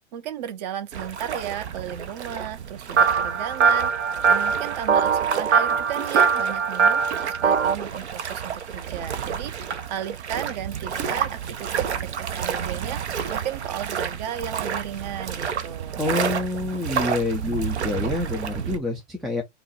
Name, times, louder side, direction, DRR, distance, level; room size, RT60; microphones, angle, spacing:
voice 1, 0.1-16.0, right 10 dB, 35° right, 0.7 m, -35 dB
sound 1, 0.9-18.8, right 7 dB, 65° right, 0.9 m, -31 dB
sound 2, 3.0-7.7, right 6 dB, 85° right, 0.6 m, -21 dB
voice 2, 16.0-19.4, left 2 dB, ahead, 0.4 m, -27 dB
5.6 x 2.3 x 4.0 m
figure-of-eight pair, 105°, 37 cm